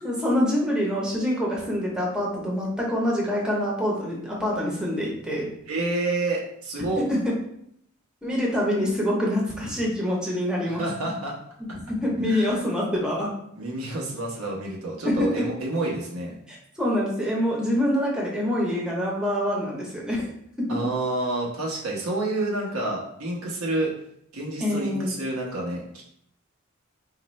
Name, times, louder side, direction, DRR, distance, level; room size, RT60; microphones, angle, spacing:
voice 1, 0.0-5.5 7.0-7.3 8.2-10.9 11.9-13.3 15.0-15.4 16.5-20.3 24.6-25.2, left 1 dB, 5° right, -4 dB, 0.8 m, -25 dB
voice 2, 5.7-7.0 10.6-11.3 11.7-11.8 12.3-12.6 13.6-16.4 20.7-23.9 24.3-26.0, right 2 dB, 85° right, -2 dB, 1.0 m, -29 dB
4.0 x 2.5 x 3.1 m, 0.72 s
head